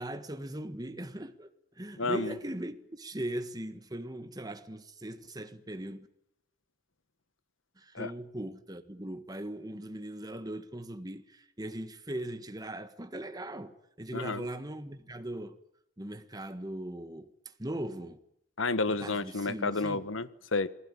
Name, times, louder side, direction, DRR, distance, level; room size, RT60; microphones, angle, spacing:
voice 1, 0.0-1.5 1.8-6.1 7.8-15.6 16.0-17.3 17.6-18.2 19.0-20.0, right 1 dB, 20° right, 1.6 m, -39 dB
voice 2, 2.0-2.4 7.9-8.1 14.1-14.4 18.6-20.7, left 3 dB, 85° left, 1.5 m, -31 dB
28.5 x 20.5 x 9.8 m
head